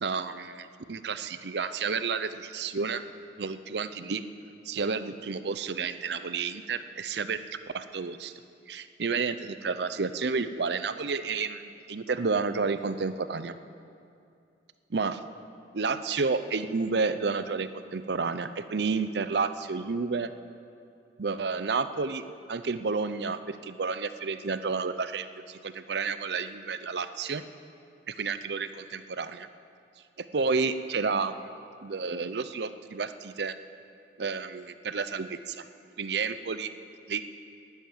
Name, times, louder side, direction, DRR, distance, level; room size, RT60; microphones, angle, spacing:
voice 1, 0.0-3.0 3.4-4.2 4.6-7.4 7.7-8.3 8.7-13.5 14.9-15.2 15.7-20.3 21.2-22.2 22.5-27.4 28.1-29.5 30.2-31.5 31.8-33.6 34.2-35.7 36.0-36.7 37.1-37.2, right 4 dB, 70° right, 12 dB, 0.6 m, -31 dB
12.0 x 10.0 x 9.5 m, 2.5 s
head